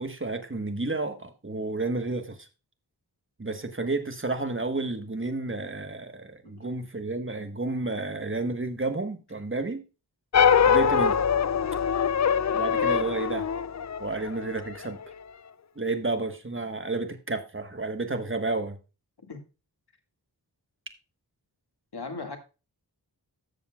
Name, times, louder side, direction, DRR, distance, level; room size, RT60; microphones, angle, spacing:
voice 1, 0.0-2.5 3.4-9.8 10.6-11.2 12.5-13.5 14.0-15.0 15.8-18.8, right 3 dB, 30° right, 1.4 m, -31 dB
sound 1, 10.3-14.9, left 7 dB, 45° left, 0.5 m, -23 dB
voice 2, 21.9-22.4, left 3 dB, 70° left, 2.0 m, -38 dB
13.5 x 6.9 x 2.3 m
wide cardioid pair, 65°, 41 cm